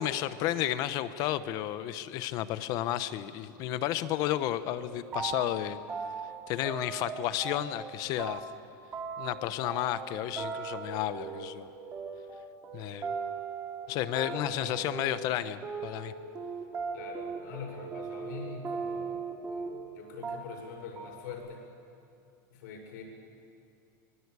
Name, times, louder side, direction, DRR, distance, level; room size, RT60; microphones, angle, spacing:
voice 1, 0.0-5.8 6.5-8.4 9.2-11.7 12.7-13.1 13.9-16.1, left 13 dB, 35° left, 13 dB, 0.9 m, -32 dB
sound 1, 4.8-5.6 5.9-7.9 8.2-19.9 20.2-20.7 21.0-21.3, right 5 dB, 20° right, 3.1 m, -38 dB
voice 2, 14.2-14.7 16.9-21.6 22.5-23.0, left 5 dB, 65° left, 2 dB, 6.4 m, -44 dB
24.0 x 21.5 x 8.3 m, 2.6 s
supercardioid pair, 165°, 11 cm